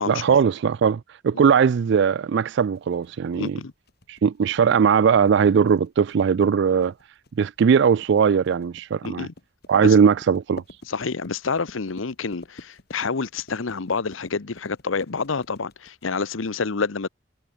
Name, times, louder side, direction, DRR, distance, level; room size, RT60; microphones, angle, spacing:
voice 1, 0.1-3.6 4.1-6.9 7.4-9.3 9.7-10.6, right 6 dB, 60° right, 0.3 m, -19 dB
sound 1, 2.7-16.5, left 2 dB, 55° left, 2.1 m, -47 dB
voice 2, 3.4-3.7 9.0-9.3 9.8-9.9 10.9-17.1, left 4 dB, 80° left, 0.9 m, -28 dB
head